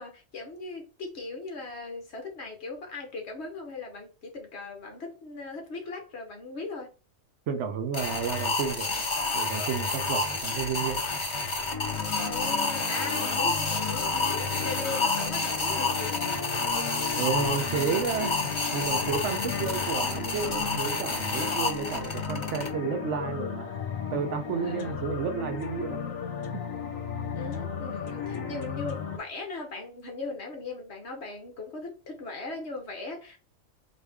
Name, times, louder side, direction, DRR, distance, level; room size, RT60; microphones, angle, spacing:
voice 1, 0.0-6.9 12.1-16.2 24.6-25.0 27.3-33.4, left 3 dB, 55° left, 1.3 m, -39 dB
voice 2, 7.5-8.9 9.3-11.0 17.2-23.7 24.1-26.0 26.5-26.6, right 6 dB, 70° right, 0.9 m, -31 dB
sound 1, 7.9-22.7, left 3 dB, 35° left, 0.5 m, -29 dB
sound 2, 11.7-29.2, left 6 dB, 80° left, 1.2 m, -35 dB
4.1 x 2.6 x 3.4 m
omnidirectional pair, 1.4 m